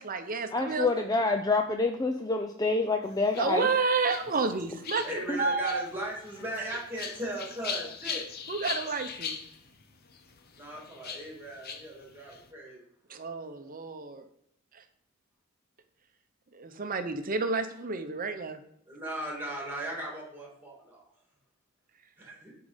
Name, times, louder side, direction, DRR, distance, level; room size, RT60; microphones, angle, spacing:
voice 1, 0.0-0.9 3.4-5.9 8.5-9.4 13.1-14.2 16.5-18.6, right 4 dB, 40° right, 8 dB, 0.8 m, -30 dB
voice 2, 0.5-3.7 5.3-5.4, left 3 dB, 20° left, 5 dB, 0.5 m, -27 dB
sound 1, 3.0-12.5, left 6 dB, 50° left, 0.8 m, -41 dB
voice 3, 5.0-8.2 10.6-12.8 18.9-21.0 22.2-22.5, right 1 dB, 10° right, -2 dB, 2.6 m, -37 dB
9.3 x 4.8 x 5.1 m, 0.71 s
head